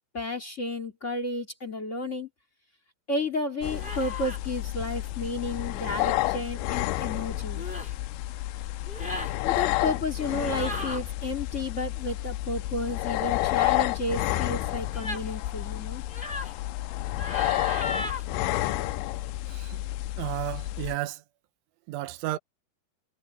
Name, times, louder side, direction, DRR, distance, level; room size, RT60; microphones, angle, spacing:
voice 1, 0.1-2.3 3.1-7.6 9.4-16.0, left 2 dB, 40° left, 1.0 m, -32 dB
sound 1, 3.6-21.0, left 17 dB, 80° left, 2.8 m, -30 dB
sound 2, 3.7-4.4 5.9-6.2 7.5-7.9 8.8-9.3 10.4-11.0 14.9-15.3 16.1-16.5 17.2-18.2, left 1 dB, 15° left, 2.2 m, -36 dB
voice 2, 19.5-19.8 20.2-21.2 21.9-22.4, right 15 dB, 80° right, 3.2 m, -33 dB
omnidirectional pair, 5.7 m